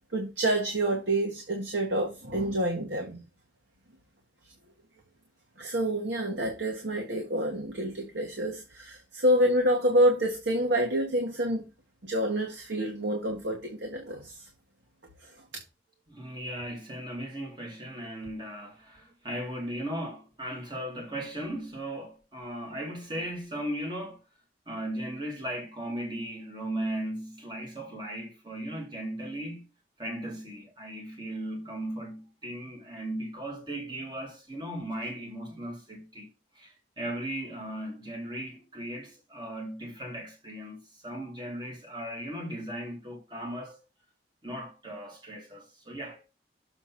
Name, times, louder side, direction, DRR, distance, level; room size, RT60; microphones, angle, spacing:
voice 1, 0.1-3.2 5.6-11.6 12.0-14.5 15.2-15.3, right 1 dB, 90° right, 1.6 m, -27 dB
voice 2, 16.1-24.2 24.7-29.7 30.0-36.3 36.5-43.8 44.4-46.2, right 1 dB, 25° right, 2.2 m, -37 dB
7.1 x 4.1 x 5.8 m
head